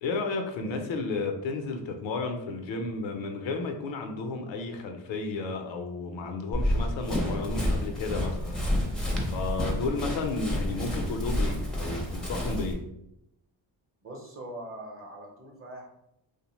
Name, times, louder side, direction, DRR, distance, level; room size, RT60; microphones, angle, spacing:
voice 1, 0.0-9.0 9.3-12.8, left 3 dB, 85° left, 5 dB, 0.6 m, -33 dB
Run, 6.5-12.7, left 1 dB, ahead, 0.5 m, -29 dB
voice 2, 14.0-15.9, right 1 dB, 30° right, 0 dB, 0.7 m, -42 dB
2.7 x 2.1 x 2.9 m, 0.82 s
cardioid pair, 100°, 45 cm